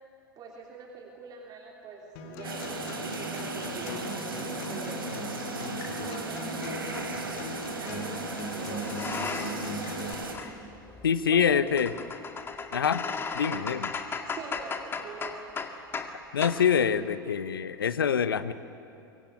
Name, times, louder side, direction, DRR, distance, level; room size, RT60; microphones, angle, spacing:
voice 1, 0.4-5.3 6.1-9.8 11.3-11.6 14.2-15.5, right 3 dB, 35° right, 0 dB, 3.2 m, -44 dB
Acoustic guitar, 2.2-10.1, left 2 dB, 50° left, 3.3 m, -39 dB
sound 1, 2.4-10.4, right 3 dB, 75° right, 3.5 m, -36 dB
sound 2, 6.9-7.1 8.2-9.7 10.0-16.2 16.4-16.6, left 5 dB, 20° left, 2.0 m, -36 dB
voice 2, 11.0-11.9 12.7-13.1 13.3-13.9 16.3-18.5, left 7 dB, 70° left, 13 dB, 1.1 m, -25 dB
25.0 x 23.5 x 9.3 m, 2.8 s
figure-of-eight pair, 85°, 12 cm